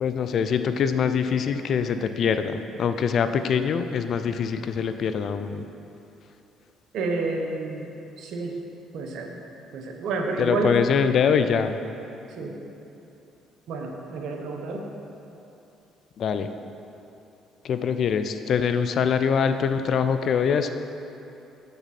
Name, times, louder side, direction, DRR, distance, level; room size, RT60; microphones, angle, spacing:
voice 1, 0.0-5.6 10.4-11.8 16.2-16.5 17.6-20.7, left 6 dB, 60° left, 9 dB, 0.4 m, -24 dB
voice 2, 6.9-7.9 8.2-8.6 8.9-9.4 9.7-10.8 12.3-12.6 13.7-14.9, right 3 dB, 70° right, 2 dB, 0.9 m, -29 dB
7.2 x 6.7 x 4.2 m, 3.0 s
hypercardioid pair, 60°, 0 cm